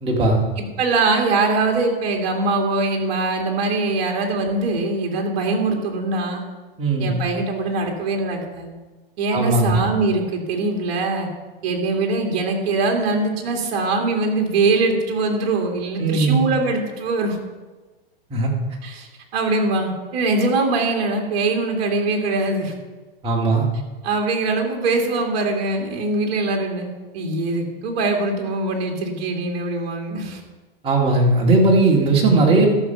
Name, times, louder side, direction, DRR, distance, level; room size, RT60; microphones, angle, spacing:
voice 1, 0.0-0.4 6.8-7.1 9.3-9.8 16.0-16.4 18.3-18.5 23.2-23.7 30.8-32.7, right 2 dB, 20° right, -2 dB, 2.0 m, -17 dB
voice 2, 0.6-6.4 7.0-8.8 9.2-11.3 11.6-17.4 18.8-22.7 24.0-26.9 27.1-30.4, right 3 dB, 45° right, 2 dB, 2.3 m, -22 dB
13.5 x 6.1 x 5.6 m, 1.2 s
hypercardioid pair, 145°, 30 cm